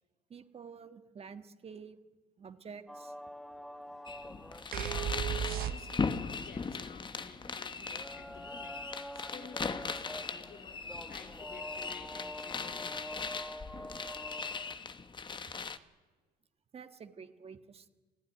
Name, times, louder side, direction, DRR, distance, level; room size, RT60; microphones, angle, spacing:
voice 1, 0.3-2.0 2.4-3.1 16.7-17.9, right 6 dB, 35° right, 9 dB, 1.6 m, -49 dB
sound 1, 2.9-14.8, equal, ahead, 1.1 m, -47 dB
sound 2, 4.1-15.8, left 5 dB, 30° left, 1.2 m, -39 dB
sound 3, 4.7-6.3, right 9 dB, 60° right, 0.8 m, -34 dB
voice 2, 5.5-8.8 9.1-13.0, left 6 dB, 60° left, 7 dB, 3.4 m, -53 dB
26.5 x 15.5 x 9.9 m, 1.3 s
cardioid pair, 110°, 17 cm